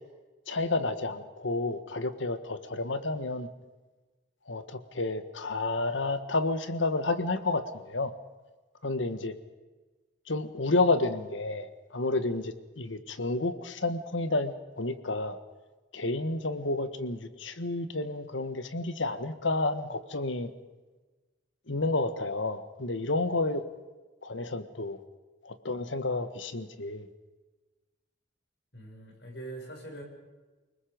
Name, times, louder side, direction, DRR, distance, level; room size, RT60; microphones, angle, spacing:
voice 1, 0.5-3.5 4.5-7.6 7.9-8.1 8.8-9.3 10.3-15.4 15.9-20.5 21.7-23.6 24.2-25.0 25.4-27.1, left 2 dB, 90° left, 11 dB, 1.6 m, -30 dB
voice 2, 28.7-30.0, right 2 dB, 65° left, 1 dB, 6.4 m, -43 dB
29.0 x 20.0 x 5.3 m, 1.2 s
head